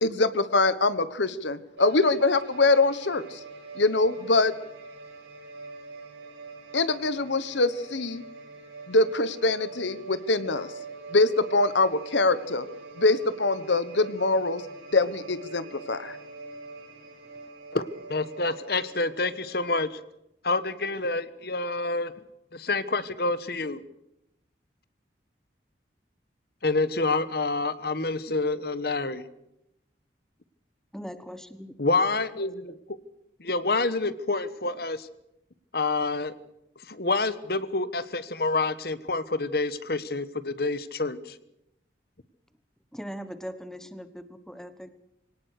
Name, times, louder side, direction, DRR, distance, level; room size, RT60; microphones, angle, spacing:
voice 1, 0.0-3.4 3.7-4.5 6.7-8.2 8.9-10.7 11.1-12.7 13.0-14.6 14.9-16.2, left 3 dB, 85° left, 14 dB, 1.3 m, -24 dB
sound 1, 1.8-19.8, right 3 dB, 75° right, 6.3 m, -44 dB
voice 2, 17.7-20.0 20.4-22.1 22.5-23.8 26.6-29.2 31.8-33.0 33.4-35.1 35.7-36.3 36.9-41.4, left 3 dB, 55° left, 14 dB, 1.3 m, -28 dB
voice 3, 30.9-31.7 42.9-44.9, equal, 5° left, 11 dB, 1.3 m, -40 dB
23.5 x 18.5 x 6.7 m, 0.83 s
head